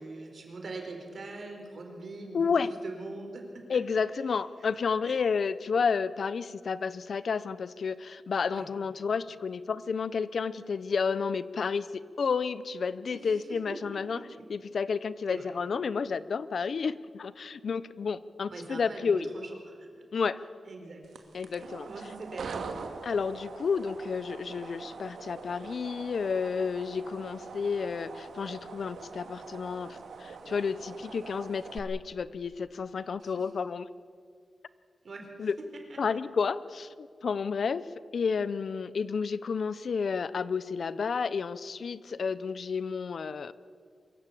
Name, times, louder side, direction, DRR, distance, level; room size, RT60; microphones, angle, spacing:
voice 1, 0.0-2.5 2.8-3.6 4.6-4.7 5.0-5.2 8.5-8.7 13.1-14.4 15.3-15.5 18.5-20.0 20.6-21.1 21.6-22.7 33.2-33.4 35.0-35.5 35.9-36.0, right 3 dB, 50° right, 3 dB, 4.3 m, -43 dB
voice 2, 2.3-2.7 3.7-14.2 14.5-19.3 20.1-20.4 21.3-21.9 23.0-33.9 35.4-35.6 36.0-37.9 38.1-43.5, left 5 dB, 60° left, 16 dB, 0.6 m, -31 dB
sound 1, 21.0-31.8, right 4 dB, 90° right, 1.9 m, -43 dB
24.5 x 14.5 x 8.5 m, 2.2 s
wide cardioid pair, 140°, 0 cm